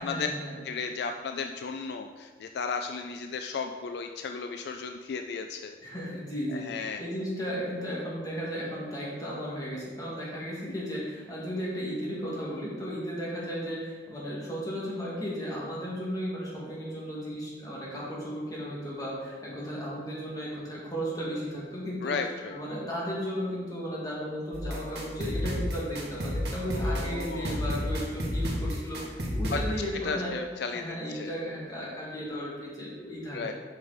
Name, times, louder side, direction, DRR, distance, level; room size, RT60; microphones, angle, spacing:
voice 1, 0.0-0.6 5.8-22.1 22.5-30.3 30.7-33.5, equal, 20° left, -5 dB, 1.9 m, -35 dB
voice 2, 0.6-5.8 6.5-7.0 22.0-22.6 26.7-27.6 29.5-29.6 30.0-31.3 33.3-33.5, left 5 dB, 65° left, 6 dB, 0.3 m, -34 dB
sound 1, 24.5-29.6, equal, 65° right, 1.5 m, -31 dB
7.9 x 5.3 x 4.0 m, 1.5 s
head